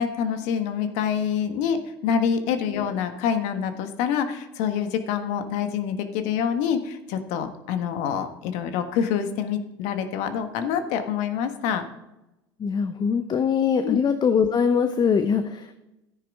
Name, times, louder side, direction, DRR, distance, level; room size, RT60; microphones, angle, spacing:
voice 1, 0.0-11.8 13.8-14.0, left 7 dB, 65° left, 8 dB, 1.4 m, -26 dB
voice 2, 12.6-15.7, left 6 dB, 30° left, 9 dB, 0.8 m, -22 dB
13.5 x 9.8 x 3.6 m, 0.93 s
hypercardioid pair, 75°, 13 cm